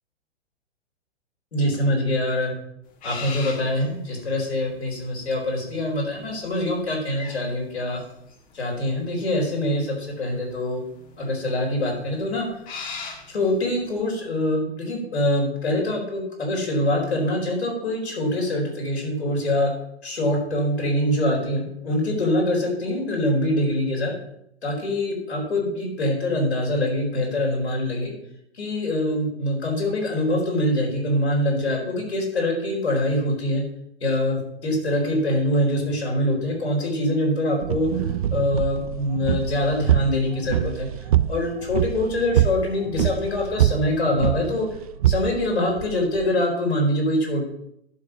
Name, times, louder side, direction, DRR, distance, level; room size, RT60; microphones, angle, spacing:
voice 1, 1.5-2.5 3.0-8.0 8.5-10.8 11.2-12.5 13.3-19.7 20.0-24.1 24.6-28.1 28.5-33.6 34.0-37.9 38.3-40.9 41.3-44.7 45.1-47.4, left 1 dB, 70° left, 1 dB, 4.3 m, -24 dB
sound 1, 2.9-14.0, left 5 dB, 25° left, 2.0 m, -41 dB
sound 2, 37.6-46.3, right 12 dB, 35° right, 0.4 m, -25 dB
11.0 x 6.4 x 5.9 m, 0.77 s
figure-of-eight pair, 115°, 33 cm